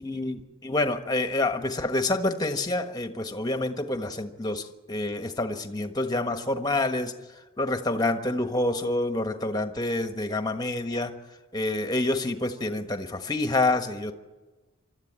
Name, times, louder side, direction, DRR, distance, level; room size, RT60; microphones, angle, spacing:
voice 1, 0.0-11.1 11.5-14.1, left 2 dB, 20° left, 6 dB, 1.4 m, -28 dB
25.0 x 13.0 x 8.9 m, 1.2 s
head